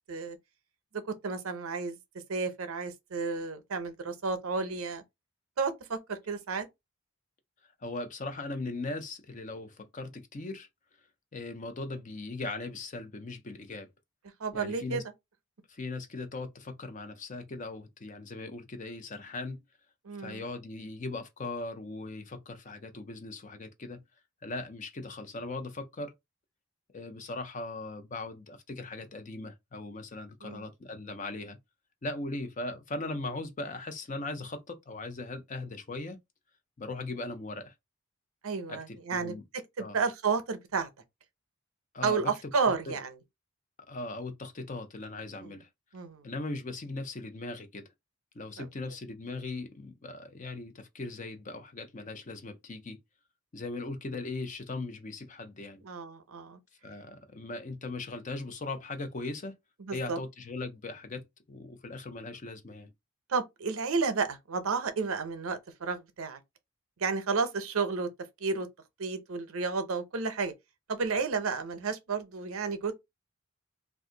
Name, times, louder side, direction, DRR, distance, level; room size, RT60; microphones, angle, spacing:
voice 1, 1.0-2.0 2.3-5.0 5.6-6.7 14.4-15.0 20.0-20.4 30.4-30.7 38.4-39.3 39.8-40.9 42.0-43.1 45.4-45.5 45.9-46.3 48.6-48.7 55.8-56.6 59.8-60.2 63.3-66.4 67.0-68.1 68.4-68.7 69.0-70.5 70.9-72.9, right 4 dB, 80° right, 0.6 m, -31 dB
voice 2, 7.8-10.7 11.3-13.9 14.5-15.0 15.7-19.6 20.2-24.0 24.4-26.1 26.9-31.6 32.0-36.2 36.8-37.7 38.7-39.4 39.8-40.0 41.9-42.5 42.9-43.0 43.9-45.7 46.2-47.9 48.3-53.0 53.5-55.8 56.8-59.6 59.9-62.9, left 2 dB, 35° left, 0.5 m, -39 dB
2.5 x 2.3 x 3.7 m
head